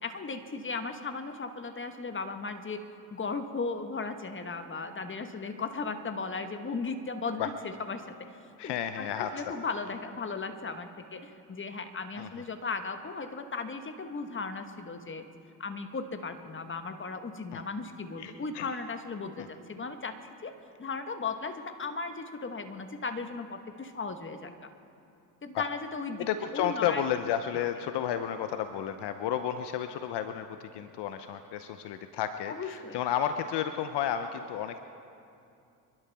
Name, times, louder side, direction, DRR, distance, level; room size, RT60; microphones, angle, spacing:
voice 1, 0.0-2.8 3.1-8.1 8.6-15.3 15.6-20.2 20.4-20.5 20.8-24.5 25.4-27.0 27.5-27.6 32.5-33.0, left 4 dB, 25° left, 8 dB, 1.4 m, -36 dB
voice 2, 8.6-9.5 12.2-12.3 17.5-17.6 18.2-18.7 19.4-19.5 25.5-25.7 26.3-34.8, left 9 dB, 60° left, 9 dB, 0.8 m, -32 dB
28.0 x 12.0 x 3.5 m, 2.6 s
hypercardioid pair, 55°, 46 cm